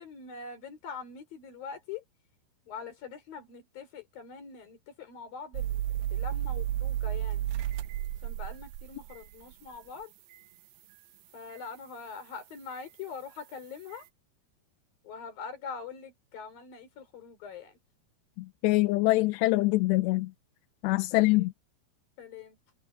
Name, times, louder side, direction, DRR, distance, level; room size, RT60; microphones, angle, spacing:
voice 1, 0.0-2.0 2.7-5.8 6.1-7.4 8.2-10.1 11.3-14.1 15.0-17.8 21.1-21.5 22.2-22.6, left 5 dB, 55° left, 6.0 m, -43 dB
sound 1, 5.5-9.8 10.3-10.4 12.7-12.8, right 12 dB, 75° right, 2.7 m, -32 dB
voice 2, 18.4-20.3 20.8-21.5, left 20 dB, 85° left, 2.8 m, -24 dB
omnidirectional pair, 4.9 m